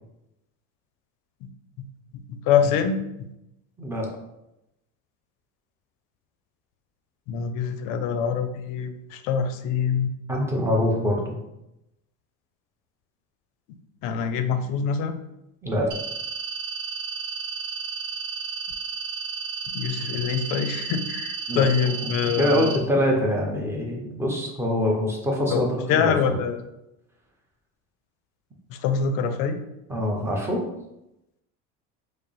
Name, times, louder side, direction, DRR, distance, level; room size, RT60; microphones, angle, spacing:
voice 1, 2.3-3.3 7.3-10.1 14.0-15.1 19.7-22.8 25.5-26.6 28.7-29.6, left 6 dB, 65° left, 9 dB, 0.5 m, -25 dB
voice 2, 10.3-11.4 15.6-15.9 21.5-21.7 22.0-26.4 29.9-30.6, left 1 dB, 5° right, -1 dB, 0.6 m, -24 dB
sound 1, 15.9-22.8, right 5 dB, 80° right, 0.7 m, -33 dB
4.7 x 2.0 x 3.2 m, 0.89 s
cardioid pair, 130°, 36 cm